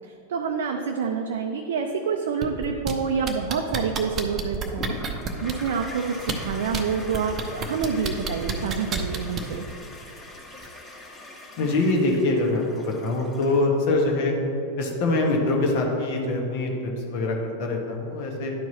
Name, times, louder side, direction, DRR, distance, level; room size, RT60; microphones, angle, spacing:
voice 1, 0.0-5.0 5.4-9.7, right 6 dB, 60° right, 3 dB, 0.5 m, -27 dB
sound 1, 2.4-2.9 3.3-5.7 6.2-6.8 7.1-9.6 10.6-10.7, right 5 dB, 25° right, 0.8 m, -29 dB
Toilet flush, 4.6-13.8, left 2 dB, 20° left, 1.4 m, -42 dB
voice 2, 11.6-14.3 14.8-18.5, left 2 dB, 50° left, 1 dB, 1.4 m, -24 dB
11.0 x 4.6 x 4.2 m, 2.9 s
figure-of-eight pair, 90°, 0 cm